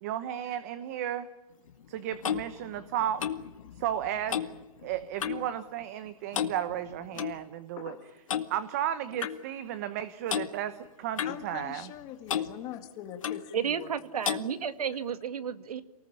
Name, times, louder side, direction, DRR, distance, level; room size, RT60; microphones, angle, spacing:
voice 1, 0.0-1.3 1.9-3.2 3.8-4.4 4.8-7.9 8.5-11.9, right 11 dB, 25° right, 13 dB, 0.9 m, -34 dB
Clock, 1.7-5.5 5.8-6.1 6.3-7.4 8.3-8.5 9.2-9.4 10.3-10.5 11.2-12.0 12.3-12.5 13.2-13.5 14.2-14.5, left 9 dB, 55° left, 2.0 m, -33 dB
voice 2, 11.2-13.9, left 11 dB, 20° left, 8 dB, 1.9 m, -42 dB
voice 3, 13.5-15.8, right 7 dB, 70° right, 12 dB, 1.9 m, -32 dB
28.5 x 19.5 x 8.8 m, 1.1 s
hypercardioid pair, 175°, 20 cm